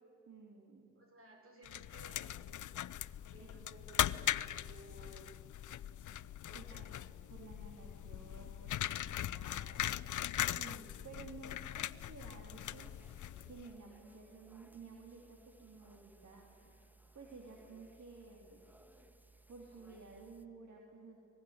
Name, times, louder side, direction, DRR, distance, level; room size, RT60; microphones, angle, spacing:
voice 1, 0.3-0.9 3.4-3.5 6.5-6.9 7.3-10.2 10.5-16.8 17.1-18.7 19.5-21.2, right 4 dB, 60° right, 0 dB, 3.7 m, -54 dB
voice 2, 1.0-2.8 3.2-5.3 6.4-7.0, right 2 dB, 45° right, 3 dB, 7.2 m, -59 dB
sound 1, 1.6-13.7, left 12 dB, 70° left, 0.6 m, -40 dB
sound 2, 12.5-20.5, right 2 dB, 5° right, 1.3 m, -63 dB
25.0 x 20.0 x 10.0 m, 2.8 s
cardioid pair, 75°, 31 cm